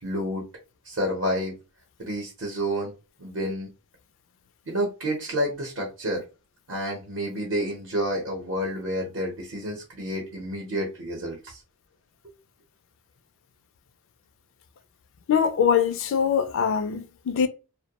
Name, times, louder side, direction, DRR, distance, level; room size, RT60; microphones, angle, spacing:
voice 1, 0.0-0.4 0.8-1.5 2.0-2.9 3.2-3.7 4.7-6.2 6.7-11.6, equal, 55° right, 0.8 m, -29 dB
voice 2, 15.3-17.5, left 7 dB, 60° left, 0.4 m, -23 dB
2.2 x 2.1 x 2.8 m
head